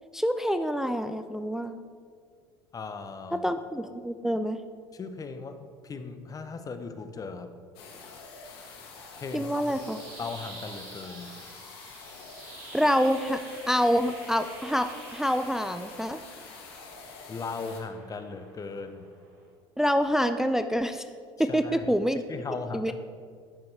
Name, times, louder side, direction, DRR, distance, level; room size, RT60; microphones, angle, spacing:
voice 1, 0.1-1.8 3.3-4.6 9.3-10.0 12.7-13.4 13.7-16.2 19.8-21.1 21.4-22.2 22.7-22.9, equal, 5° right, 9 dB, 0.4 m, -26 dB
voice 2, 2.7-3.5 4.9-7.5 9.2-9.7 10.2-11.3 17.3-19.1 21.4-21.9 22.3-22.9, left 4 dB, 25° left, 8 dB, 0.8 m, -38 dB
sound 1, 7.8-17.8, left 4 dB, 75° left, 1.3 m, -47 dB
sound 2, 9.4-19.5, right 3 dB, 65° right, 2.0 m, -49 dB
9.7 x 6.9 x 3.3 m, 2.1 s
hypercardioid pair, 75°, 13 cm